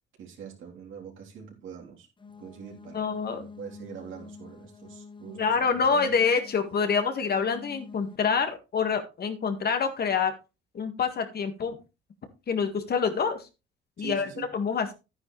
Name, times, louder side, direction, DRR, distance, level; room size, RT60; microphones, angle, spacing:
voice 1, 0.2-2.1 2.4-6.1 14.0-14.5, right 7 dB, 75° right, 0 dB, 3.7 m, -44 dB
sound 1, 2.2-8.2, left 5 dB, 25° left, 1.0 m, -48 dB
voice 2, 2.9-3.4 5.4-10.3 10.7-11.8 12.5-13.5 14.0-14.3 14.5-14.9, left 5 dB, 50° left, 7 dB, 1.9 m, -26 dB
10.5 x 9.5 x 3.3 m, 0.28 s
cardioid pair, 90°, 20 cm